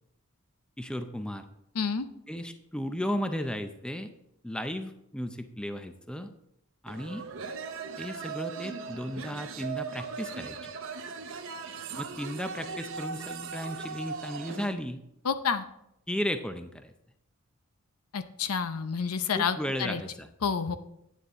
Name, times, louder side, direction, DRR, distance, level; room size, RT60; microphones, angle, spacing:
voice 1, 0.8-1.4 2.3-4.1 4.4-6.3 6.8-7.2 8.0-10.7 12.0-15.0 16.1-16.9 19.3-20.3, equal, 5° left, 8 dB, 0.5 m, -35 dB
voice 2, 1.7-2.1 15.2-15.6 18.1-20.0 20.4-20.8, left 6 dB, 80° left, 11 dB, 0.7 m, -29 dB
sound 1, 6.9-14.7, right 5 dB, 60° right, 0.9 m, -39 dB
9.5 x 9.3 x 3.7 m, 0.80 s
head